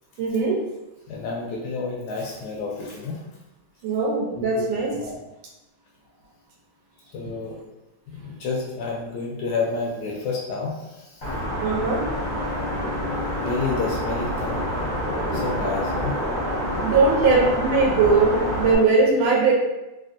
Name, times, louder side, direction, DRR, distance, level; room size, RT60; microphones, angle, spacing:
voice 1, 0.2-0.6 3.8-4.9 11.6-12.0 16.8-19.5, right 4 dB, 90° right, -2 dB, 1.5 m, -20 dB
voice 2, 1.1-3.2 4.4-4.7 5.0-5.2 7.1-7.6 8.1-11.2 12.4-12.7 13.1-14.7 15.3-16.2, left 4 dB, 75° left, -3 dB, 0.9 m, -30 dB
sound 1, 11.2-18.7, equal, 40° left, 0.6 m, -27 dB
3.4 x 2.4 x 2.5 m, 1.0 s
omnidirectional pair, 2.2 m